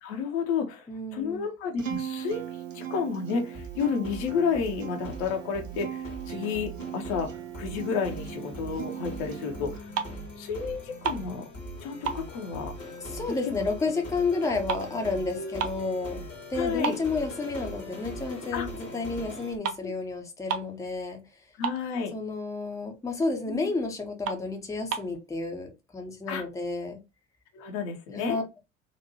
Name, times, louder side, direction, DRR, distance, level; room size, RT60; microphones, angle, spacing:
voice 1, 0.0-0.9 1.1-9.9 10.4-11.5 11.8-12.7 13.5-13.7 15.3-15.7 16.6-17.0 18.5-18.7 19.8-19.9 21.6-22.1 23.5-23.7 26.3-26.4 27.5-28.6, left 6 dB, 55° left, 0.9 m, -31 dB
voice 2, 0.9-1.4 13.0-16.2 16.5-21.2 22.1-27.0 28.1-28.6, left 3 dB, 10° left, 0.8 m, -31 dB
Acoustic guitar, 1.8-9.8, right 9 dB, 80° right, 0.6 m, -39 dB
sound 1, 3.5-19.5, equal, 85° left, 1.4 m, -41 dB
sound 2, 9.9-10.4 10.7-11.8 12.0-13.6 13.9-15.9 16.3-16.4 16.8-17.9 18.3-18.5 19.3-19.4 19.6-19.9 20.2-20.3 20.5-20.8 21.1-21.2 21.4-22.3 22.7-22.8 23.2-23.3 23.8-23.9 24.2-25.2, right 7 dB, 40° right, 0.6 m, -34 dB
4.1 x 2.6 x 2.7 m
figure-of-eight pair, 60°, 38 cm